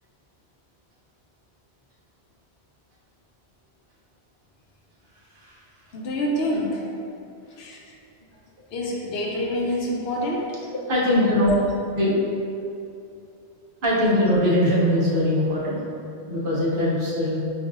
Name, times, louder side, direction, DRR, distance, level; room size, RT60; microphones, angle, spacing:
voice 1, 5.9-6.9 7.6-7.8 8.7-10.8, left 1 dB, 65° left, -2 dB, 0.8 m, -27 dB
voice 2, 10.9-11.6 11.9-12.2 13.8-15.8 16.3-17.4, left 1 dB, 55° right, -6 dB, 1.0 m, -21 dB
5.1 x 2.5 x 2.5 m, 2.6 s
omnidirectional pair, 1.1 m